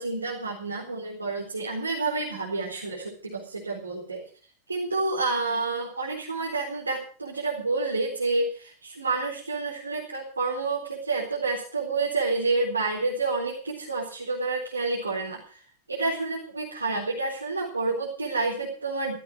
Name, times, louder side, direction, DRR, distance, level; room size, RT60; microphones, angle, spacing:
voice 1, 0.0-4.2 4.7-15.4 15.9-19.2, right 3 dB, 80° right, -3 dB, 4.0 m, -29 dB
15.5 x 15.0 x 4.9 m, 0.42 s
figure-of-eight pair, 90°, 0 cm